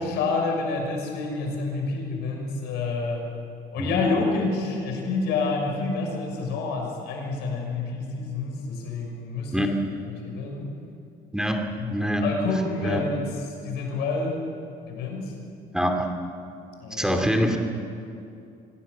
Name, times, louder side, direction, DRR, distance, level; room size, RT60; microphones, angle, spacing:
voice 1, 0.0-3.2 3.7-9.7 10.1-10.7 11.8-13.3 13.6-14.4 14.9-15.3 16.8-17.2, left 3 dB, 85° left, 1 dB, 6.3 m, -28 dB
voice 2, 9.5-10.0 11.3-11.6 11.9-12.2 12.8-13.1 15.7-16.2 16.9-17.6, equal, 5° right, 4 dB, 2.5 m, -25 dB
25.0 x 17.5 x 8.5 m, 2.6 s
cardioid pair, 110°, 17 cm